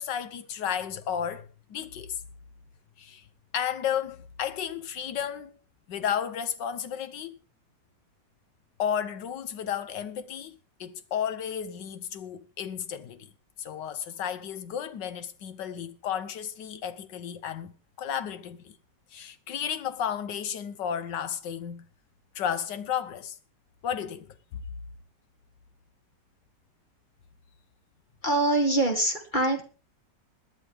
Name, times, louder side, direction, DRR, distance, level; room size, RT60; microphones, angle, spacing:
voice 1, 0.0-2.2 3.0-3.2 3.5-5.6 5.9-7.4 8.8-13.3 13.6-18.8 19.1-21.8 22.3-23.4 23.8-24.4, left 8 dB, 75° left, 1.6 m, -33 dB
voice 2, 28.2-29.6, right 2 dB, 25° left, 2.1 m, -24 dB
21.5 x 9.2 x 3.5 m
omnidirectional pair, 2.0 m